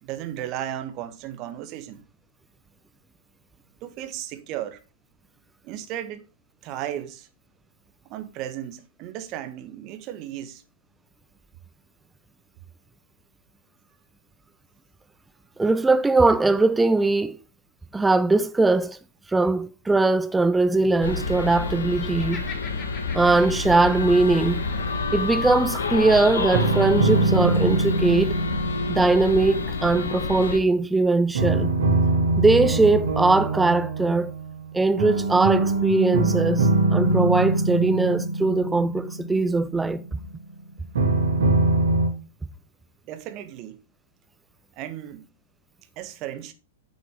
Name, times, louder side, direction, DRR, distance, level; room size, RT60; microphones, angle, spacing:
voice 1, 0.0-2.0 3.8-4.8 5.6-6.2 6.6-7.3 8.1-10.6 43.1-43.8 44.8-45.3 46.0-46.5, right 11 dB, 40° right, 1.4 m, -35 dB
voice 2, 15.6-17.4 17.9-19.0 19.3-22.4 23.1-24.6 25.1-28.4 28.9-31.7 32.4-34.3 34.7-40.0, right 3 dB, 10° right, 0.6 m, -21 dB
sound 1, 21.0-30.6, left 4 dB, 75° left, 1.7 m, -29 dB
Laughter, 22.0-25.0, left 5 dB, 25° left, 2.5 m, -42 dB
sound 2, 23.9-25.1 26.5-30.5 31.3-40.2 40.9-42.1, right 2 dB, 70° right, 3.0 m, -24 dB
9.3 x 7.1 x 3.6 m
figure-of-eight pair, 105°, 0 cm